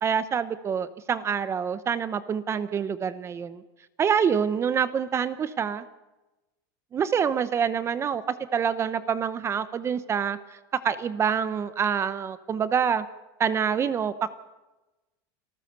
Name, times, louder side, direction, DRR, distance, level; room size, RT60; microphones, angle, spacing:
voice 1, 0.0-3.6 4.0-5.8 6.9-13.1 13.4-14.3, right 7 dB, 25° right, 14 dB, 0.9 m, -26 dB
27.5 x 14.0 x 6.8 m, 1.1 s
supercardioid pair, 135°, 11 cm